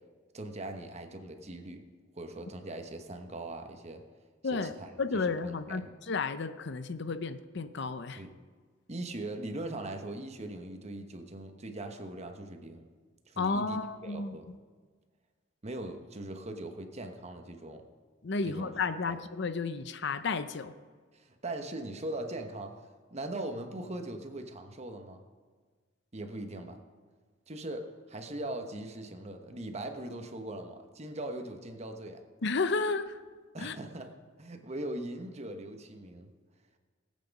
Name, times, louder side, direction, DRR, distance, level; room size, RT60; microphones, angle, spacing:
voice 1, 0.3-1.8 2.1-4.0 4.5-4.9 5.4-5.8 8.1-8.4 8.9-12.8 13.3-14.5 15.6-17.8 18.6-19.2 21.1-22.7 23.1-25.2 26.1-26.8 27.5-32.2 33.5-34.1 34.4-36.3, right 1 dB, 35° right, 6 dB, 1.2 m, -40 dB
voice 2, 4.4-8.2 13.4-14.4 18.2-20.7 32.4-33.2 33.6-33.8, left 4 dB, 60° left, 12 dB, 0.7 m, -32 dB
18.5 x 8.6 x 5.3 m, 1.5 s
head